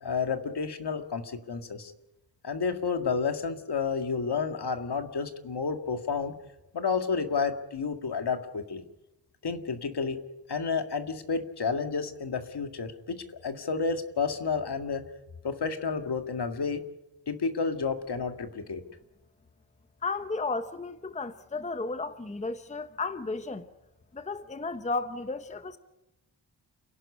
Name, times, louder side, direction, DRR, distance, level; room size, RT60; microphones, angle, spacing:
voice 1, 0.0-1.9 2.4-6.4 6.7-8.8 9.4-10.2 10.5-15.0 15.4-16.9 17.3-18.8, left 5 dB, 65° left, 2.1 m, -30 dB
voice 2, 20.0-23.7 24.1-25.8, left 3 dB, 15° left, 0.8 m, -33 dB
29.5 x 11.5 x 9.9 m
wide cardioid pair, 155°, 43 cm